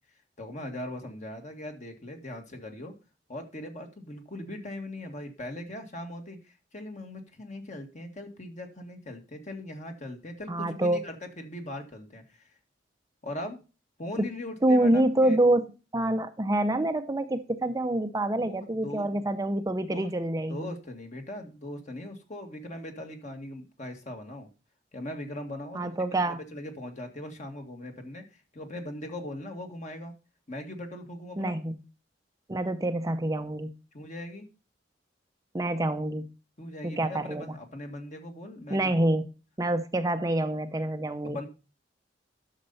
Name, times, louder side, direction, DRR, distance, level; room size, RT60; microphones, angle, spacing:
voice 1, 0.4-2.9 3.3-12.5 13.2-13.6 14.0-15.4 18.4-19.2 19.9-20.1 20.5-24.5 24.9-25.9 26.3-28.3 28.5-30.1 30.5-31.6 33.9-34.5 36.6-39.1 41.2-41.5, left 1 dB, 40° left, 1.8 m, -40 dB
voice 2, 10.5-11.0 14.6-20.7 25.7-26.4 31.4-31.8 32.5-33.7 35.5-36.2 36.8-37.5 38.7-39.2 39.6-41.4, right 1 dB, 20° right, 0.6 m, -26 dB
11.0 x 6.7 x 4.1 m
head